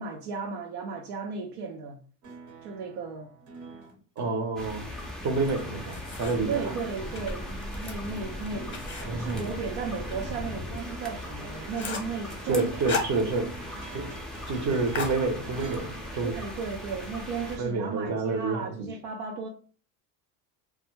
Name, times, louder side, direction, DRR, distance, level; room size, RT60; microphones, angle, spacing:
voice 1, 0.0-2.0 2.6-3.3 6.5-8.8 9.1-12.7 16.2-19.5, right 5 dB, 80° right, 0.6 m, -35 dB
sound 1, 2.2-17.1 18.4-18.5, right 3 dB, 65° right, 1.0 m, -48 dB
voice 2, 4.2-4.8 5.2-6.6 9.0-9.4 12.5-13.5 13.9-14.1 14.5-16.3 17.6-18.9, right 3 dB, 40° right, 0.7 m, -28 dB
sound 2, 4.6-17.6, left 1 dB, ahead, 0.3 m, -39 dB
sound 3, 5.4-6.6 7.0-10.3 10.6-10.7 11.1-11.2 11.5-12.2 12.6-13.7 13.9-14.0 14.3-14.6 14.9-15.8, left 4 dB, 25° left, 0.7 m, -37 dB
2.2 x 2.0 x 3.0 m
supercardioid pair, 95°, 45 cm